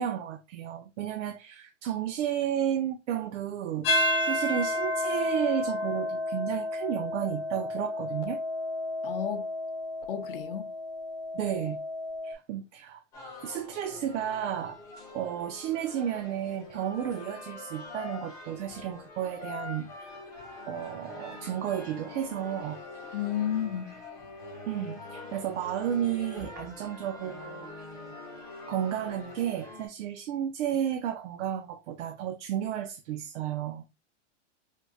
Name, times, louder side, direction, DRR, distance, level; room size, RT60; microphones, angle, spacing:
voice 1, 0.0-8.4 11.3-11.8 12.2-13.0 13.4-14.8 15.1-20.1 20.7-22.8 24.7-27.7 28.7-33.8, right 10 dB, 75° right, 0.5 m, -32 dB
sound 1, 3.8-12.3, left 1 dB, 80° left, 1.0 m, -31 dB
voice 2, 9.0-9.5 10.1-10.7 23.1-24.0, left 10 dB, 50° left, 0.7 m, -32 dB
sound 2, 13.1-29.9, left 3 dB, 10° left, 0.6 m, -44 dB
3.6 x 2.5 x 2.4 m
supercardioid pair, 170°, 36 cm